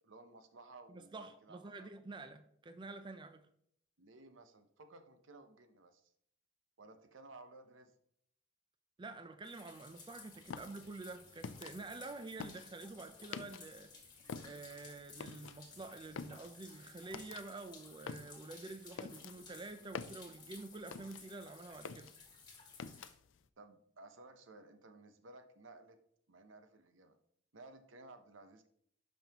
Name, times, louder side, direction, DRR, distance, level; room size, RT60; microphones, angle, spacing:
voice 1, 0.0-1.9 4.0-6.1 6.8-7.9 23.6-26.0 26.3-27.2 27.5-28.7, right 2 dB, 80° right, 8 dB, 0.8 m, -57 dB
voice 2, 0.9-3.5 9.0-13.9 14.4-22.1, right 3 dB, 25° right, 9 dB, 0.4 m, -48 dB
sound 1, 9.4-23.1, left 4 dB, 25° left, 1.8 m, -57 dB
sound 2, 9.9-17.1, right 1 dB, 40° right, 1.9 m, -73 dB
sound 3, 10.4-13.9 14.2-21.5 21.7-23.4, left 5 dB, 70° left, 0.4 m, -48 dB
11.5 x 5.4 x 2.9 m, 0.69 s
head